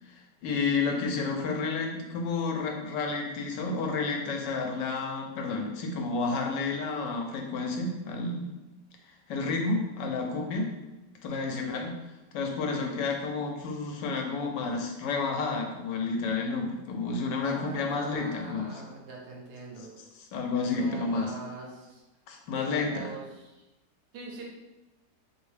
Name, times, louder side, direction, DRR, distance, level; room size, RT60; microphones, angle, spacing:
voice 1, 0.4-8.5 9.3-10.7 11.2-11.9 12.3-18.8 20.3-21.3 22.3-23.1, left 4 dB, 85° left, 2 dB, 1.3 m, -30 dB
voice 2, 11.3-11.8 12.7-12.9 17.4-19.9 20.7-22.0 22.5-23.6 24.1-24.4, right 3 dB, 70° right, -2 dB, 1.4 m, -43 dB
3.6 x 3.3 x 3.2 m, 1.1 s
omnidirectional pair, 1.8 m